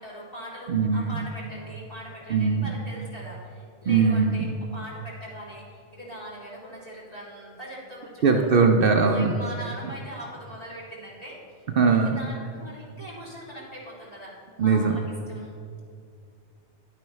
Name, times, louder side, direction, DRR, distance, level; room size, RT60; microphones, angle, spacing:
voice 1, 0.0-8.5 9.1-11.4 11.9-15.5, equal, 35° left, -6 dB, 2.5 m, -41 dB
voice 2, 0.7-1.2 2.3-2.7 3.9-4.5 8.2-9.3 11.8-12.2 14.6-15.0, right 5 dB, 60° right, 3 dB, 0.8 m, -20 dB
10.5 x 9.0 x 3.1 m, 2.4 s
omnidirectional pair, 1.1 m